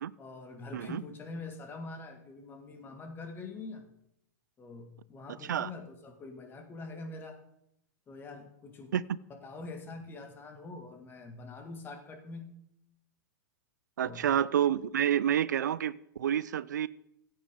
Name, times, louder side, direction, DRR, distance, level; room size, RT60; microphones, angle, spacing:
voice 1, 0.2-3.9 4.6-7.4 8.1-8.9 9.3-12.5 14.0-14.3, left 3 dB, 20° left, 5 dB, 2.1 m, -44 dB
voice 2, 14.0-16.9, right 10 dB, 80° right, 19 dB, 0.4 m, -29 dB
15.5 x 8.5 x 3.7 m, 0.79 s
hypercardioid pair, 120°, 10 cm